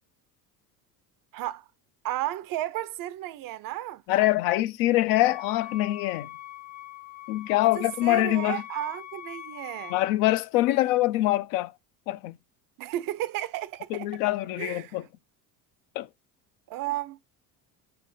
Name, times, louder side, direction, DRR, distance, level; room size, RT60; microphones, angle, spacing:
voice 1, 1.3-1.6 2.0-4.0 7.7-10.0 12.8-14.2 14.6-15.0 16.7-17.2, right 14 dB, 50° right, 0.5 m, -33 dB
voice 2, 4.1-6.3 7.3-8.6 9.9-11.7 12.1-12.4 13.9-15.0 16.0-16.1, left 16 dB, 75° left, 0.5 m, -24 dB
Wind instrument woodwind instrument, 5.2-10.2, left 12 dB, 20° left, 0.6 m, -43 dB
3.4 x 3.2 x 3.7 m
supercardioid pair, 80°, 46 cm